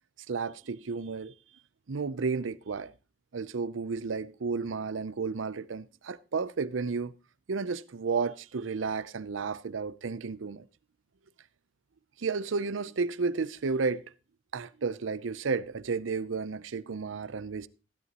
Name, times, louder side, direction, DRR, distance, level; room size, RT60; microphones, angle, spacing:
voice 1, 0.3-1.3 1.9-2.9 3.3-7.1 7.5-10.6 12.2-14.0 14.5-17.7, right 4 dB, 90° right, 0.6 m, -32 dB
15.5 x 11.0 x 2.9 m
head